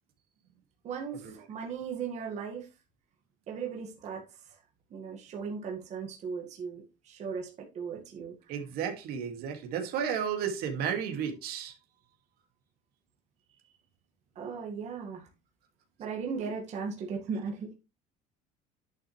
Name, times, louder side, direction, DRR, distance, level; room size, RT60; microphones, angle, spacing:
voice 1, 0.8-2.7 3.5-4.2 4.9-8.4 14.4-15.3 16.0-17.7, right 6 dB, 45° right, 2.1 m, -37 dB
voice 2, 8.5-11.7, right 7 dB, 65° right, 2.4 m, -33 dB
10.5 x 6.7 x 3.4 m
cardioid pair, 145°, 17 cm